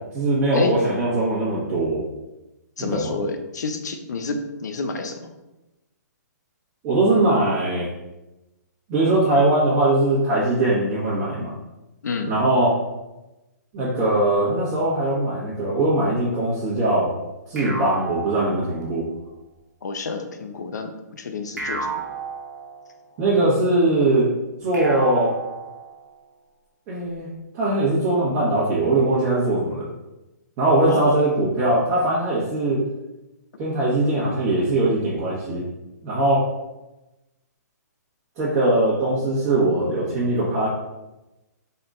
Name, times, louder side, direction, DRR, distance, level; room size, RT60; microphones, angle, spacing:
voice 1, 0.1-2.0 2.8-3.1 6.8-7.9 8.9-11.5 12.3-12.8 13.7-17.1 17.5-19.0 23.2-24.3 24.6-25.3 26.9-27.3 27.5-29.9 30.6-32.8 33.6-35.6 36.0-36.4 38.4-40.7, right 2 dB, 30° right, -9 dB, 1.3 m, -21 dB
voice 2, 2.8-5.3 12.0-12.4 19.8-21.9 30.9-31.2, left 4 dB, 75° left, 6 dB, 0.5 m, -29 dB
sound 1, 17.6-19.2 21.6-23.2 24.7-26.2, right 4 dB, 80° right, 1.2 m, -33 dB
3.9 x 3.6 x 2.5 m, 1.0 s
hypercardioid pair, 135°, 10 cm